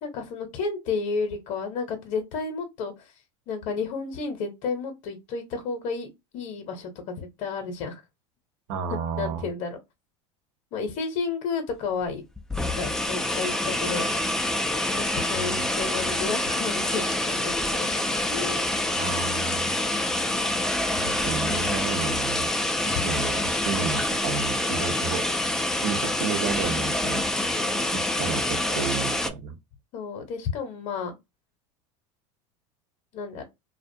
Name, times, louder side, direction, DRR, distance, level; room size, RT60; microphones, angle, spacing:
voice 1, 0.0-3.1 3.5-8.0 8.9-9.8 10.7-12.2 12.7-14.1 15.0-18.7 23.1-23.4 27.4-28.0 29.9-31.1 33.1-33.4, left 5 dB, 55° left, 0.8 m, -32 dB
voice 2, 8.7-9.5 15.3-15.6 18.9-19.7 20.9-22.5 22.9-25.2 25.8-27.2 27.9-29.6, right 6 dB, 70° right, 0.7 m, -32 dB
sound 1, 12.0-12.1 12.4-29.3, left 1 dB, 5° left, 0.3 m, -26 dB
2.3 x 2.1 x 2.6 m
supercardioid pair, 95°, 16 cm